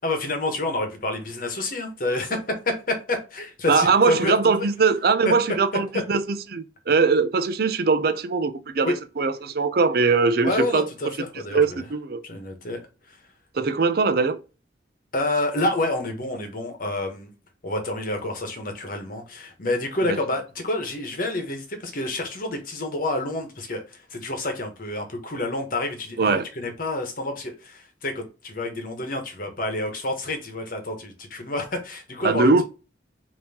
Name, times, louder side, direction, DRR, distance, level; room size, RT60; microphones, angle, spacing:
voice 1, 0.0-4.4 5.2-5.3 8.8-8.9 10.4-11.8 12.2-12.8 13.1-13.2 15.1-17.3 17.6-32.5, left 2 dB, 50° left, 1.1 m, -28 dB
voice 2, 3.7-10.9 11.5-12.2 13.5-14.4 26.2-26.5 32.2-32.6, right 4 dB, 55° right, 0.5 m, -21 dB
5.3 x 2.9 x 2.8 m
head